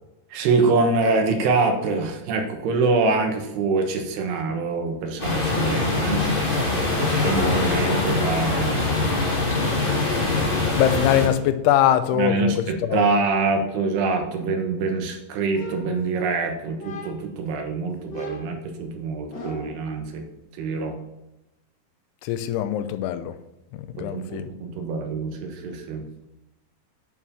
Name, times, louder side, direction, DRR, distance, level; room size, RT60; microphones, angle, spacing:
voice 1, 0.3-6.2 6.7-9.1 12.1-20.3 20.6-21.0 24.0-26.1, right 3 dB, 75° right, 4 dB, 3.2 m, -25 dB
sound 1, 5.2-11.3, left 3 dB, 30° left, 1.0 m, -23 dB
voice 2, 10.8-13.0 22.2-23.3 24.0-24.5, left 11 dB, 85° left, 10 dB, 2.6 m, -22 dB
sound 2, 15.5-16.4 16.8-17.4 18.1-19.9, equal, 45° left, 1.5 m, -38 dB
9.5 x 5.7 x 7.0 m, 0.94 s
omnidirectional pair, 5.0 m